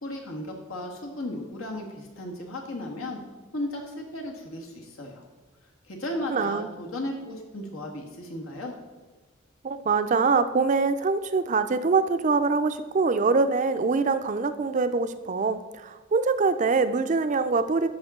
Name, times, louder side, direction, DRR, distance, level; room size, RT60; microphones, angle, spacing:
voice 1, 0.0-3.2 3.5-5.2 5.9-8.7, left 1 dB, 90° left, 1 dB, 1.6 m, -35 dB
voice 2, 6.3-6.7 9.6-17.9, right 4 dB, 35° right, 11 dB, 0.4 m, -24 dB
13.0 x 5.4 x 3.7 m, 1.2 s
head